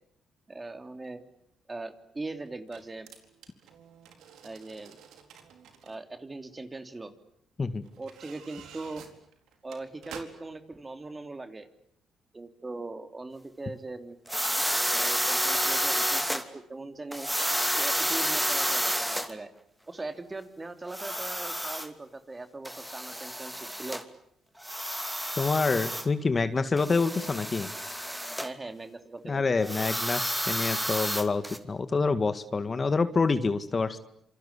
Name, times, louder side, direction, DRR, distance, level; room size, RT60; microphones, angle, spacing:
voice 1, 0.5-1.2 1.7-3.1 4.4-5.0 5.8-7.1 8.0-9.0 9.6-11.7 12.3-14.2 14.9-17.3 17.8-19.5 19.9-24.0 28.4-29.4, right 3 dB, 20° right, 9 dB, 3.0 m, -40 dB
sound 1, 1.0-1.1 2.5-6.0 7.0-7.1 7.8-10.6 11.0-11.1, right 8 dB, 80° right, 4.2 m, -50 dB
sound 2, 14.3-16.4 17.1-19.3 20.9-21.9 22.7-24.0 24.6-26.1 26.8-28.5 29.6-31.6, equal, 5° right, 2.8 m, -30 dB
voice 2, 25.4-27.7 29.3-34.0, left 4 dB, 35° left, 11 dB, 1.9 m, -27 dB
27.5 x 25.5 x 8.4 m, 0.74 s
cardioid pair, 90°, 0 cm